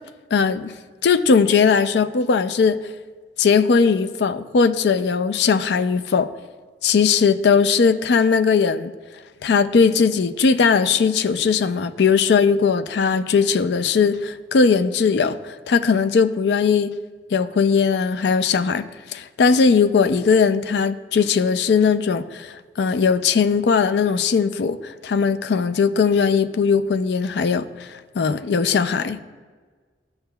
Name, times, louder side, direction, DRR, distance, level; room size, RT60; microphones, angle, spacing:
voice 1, 0.3-0.7 1.0-2.8 3.4-6.3 6.8-8.9 9.4-16.9 17.3-18.8 19.1-27.9 28.2-29.2, left 5 dB, 75° left, 11 dB, 0.4 m, -19 dB
14.0 x 5.6 x 2.3 m, 1.5 s
head